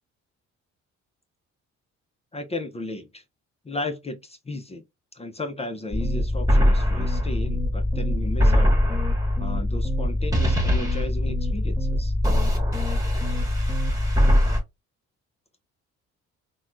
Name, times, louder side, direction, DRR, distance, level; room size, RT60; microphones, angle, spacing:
voice 1, 2.3-3.2 3.7-4.8 5.1-8.8 9.4-12.1, left 2 dB, 20° left, 0.5 m, -34 dB
sound 1, 5.9-14.6, left 1 dB, 10° right, 1.1 m, -22 dB
3.3 x 2.2 x 2.4 m
cardioid pair, 90°, 30 cm